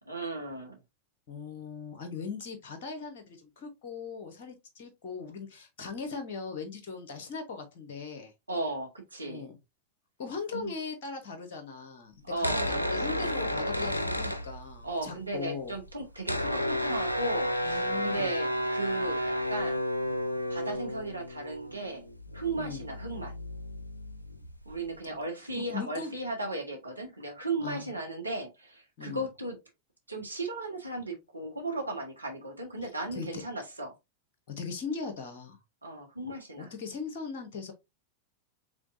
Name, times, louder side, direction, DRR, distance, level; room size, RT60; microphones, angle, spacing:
voice 1, 0.1-0.8 8.5-9.5 10.5-10.7 12.2-12.7 14.8-19.8 20.5-22.0 22.3-23.3 24.6-29.6 30.1-33.9 35.8-36.7, right 2 dB, 80° right, 1.3 m, -36 dB
voice 2, 1.3-8.3 9.2-9.6 10.2-15.7 17.6-18.3 22.6-22.9 25.5-26.1 27.6-27.9 29.0-29.3 32.8-33.4 34.6-35.6 36.6-37.7, left 5 dB, 50° left, 1.0 m, -39 dB
sound 1, 12.3-15.0 15.3-15.4 15.6-25.0, equal, 85° left, 0.5 m, -32 dB
4.9 x 3.4 x 2.6 m
figure-of-eight pair, 90°, 0 cm